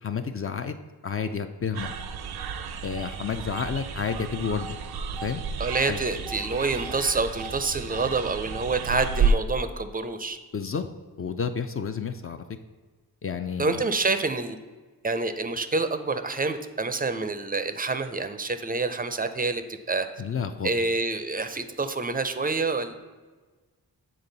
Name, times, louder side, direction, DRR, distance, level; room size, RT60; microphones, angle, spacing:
voice 1, 0.0-0.7 1.0-2.0 2.8-4.8 5.2-5.4 5.9-6.0 10.5-10.9 11.2-12.4 13.2-13.8 20.2-20.7, left 6 dB, 35° left, 8 dB, 0.4 m, -30 dB
sound 1, 1.7-9.3, right 4 dB, 75° right, 0.5 m, -31 dB
voice 2, 5.6-10.4 13.6-14.6 15.0-19.6 19.9-20.1 20.6-22.9, right 3 dB, 25° right, 10 dB, 0.4 m, -27 dB
7.2 x 3.7 x 3.9 m, 1.3 s
cardioid pair, 55°, 39 cm